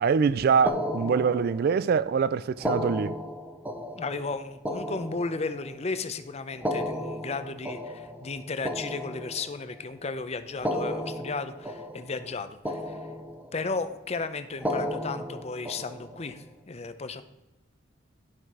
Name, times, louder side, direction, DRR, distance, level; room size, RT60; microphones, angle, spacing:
voice 1, 0.0-3.2, right 6 dB, 50° right, 0.3 m, -24 dB
sound 1, 0.7-1.9 2.5-5.8 6.5-9.8 10.5-12.4 12.6-13.7 14.5-16.3, left 1 dB, 10° right, 0.7 m, -34 dB
voice 2, 4.0-13.0 13.5-17.2, left 3 dB, 35° left, 0.6 m, -34 dB
12.0 x 5.9 x 4.7 m
head